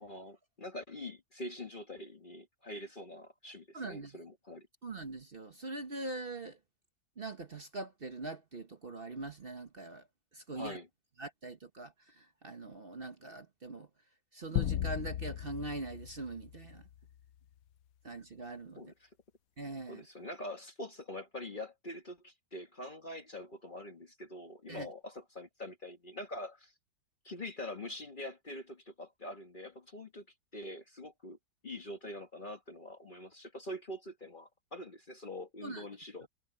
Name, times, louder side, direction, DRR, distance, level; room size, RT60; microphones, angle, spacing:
voice 1, 0.0-4.7 10.5-10.9 18.8-19.1 19.9-26.7 27.2-30.2 30.5-31.4 31.6-36.3, left 1 dB, 35° left, 1.3 m, -44 dB
voice 2, 3.7-4.1 4.8-6.6 7.2-10.0 10.3-10.8 11.2-13.9 14.3-16.8 18.0-18.9 19.6-20.0 24.7-24.9 35.6-35.8 36.2-36.3, right 2 dB, 40° right, 1.2 m, -42 dB
sound 1, 14.6-17.1, left 12 dB, 70° left, 1.0 m, -36 dB
omnidirectional pair, 1.7 m